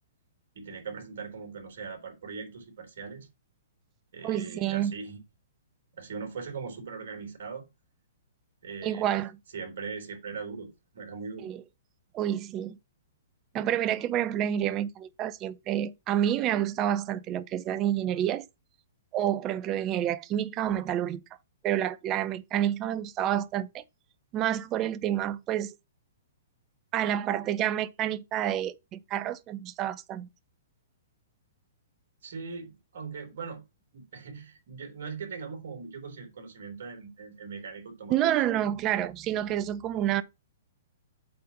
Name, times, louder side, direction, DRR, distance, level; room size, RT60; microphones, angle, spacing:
voice 1, 0.5-3.3 4.1-5.2 5.9-7.6 8.6-9.1 9.5-11.5 32.2-33.6 33.9-38.3, right 5 dB, 65° right, 3.4 m, -40 dB
voice 2, 4.2-4.9 8.8-9.4 11.4-11.6 12.1-12.8 13.5-18.5 19.1-21.2 21.6-23.8 24.3-25.8 26.9-30.3 38.1-40.2, right 11 dB, 30° right, 0.6 m, -29 dB
7.7 x 4.2 x 5.0 m
hypercardioid pair, 130°, 0 cm